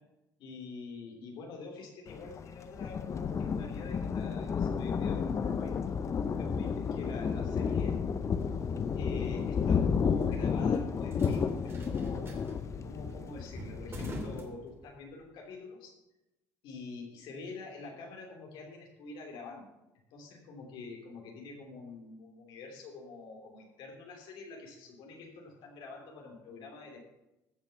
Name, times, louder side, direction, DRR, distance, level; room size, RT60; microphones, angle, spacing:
voice 1, 0.4-8.0 9.0-12.5 12.8-16.0 16.6-19.7 20.1-27.0, left 3 dB, 75° left, 0 dB, 3.0 m, -46 dB
Thunder, 2.1-14.4, left 6 dB, 35° left, 0.6 m, -32 dB
sound 1, 8.0-15.2, right 1 dB, 30° right, 2.7 m, -48 dB
15.0 x 5.9 x 5.7 m, 0.97 s
supercardioid pair, 95°, 8 cm